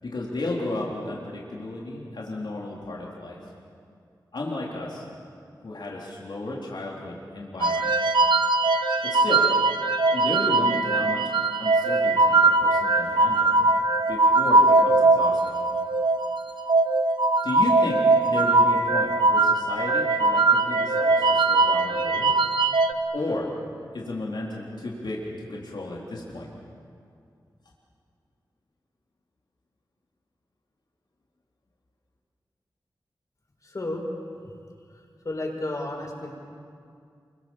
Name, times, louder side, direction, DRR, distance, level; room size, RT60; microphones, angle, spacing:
voice 1, 0.0-3.4 4.3-5.0 5.6-7.9 9.0-9.5 10.1-11.3 11.6-13.5 14.1-15.6 17.4-22.3 23.1-23.5 23.9-26.5, left 2 dB, 70° left, -3 dB, 3.9 m, -33 dB
sound 1, 7.6-22.9, right 2 dB, 75° right, 1.4 m, -21 dB
voice 2, 33.6-34.0 34.9-36.3, left 2 dB, 45° left, 0 dB, 6.6 m, -33 dB
29.5 x 25.0 x 7.4 m, 2.3 s
wide cardioid pair, 90°, 8 cm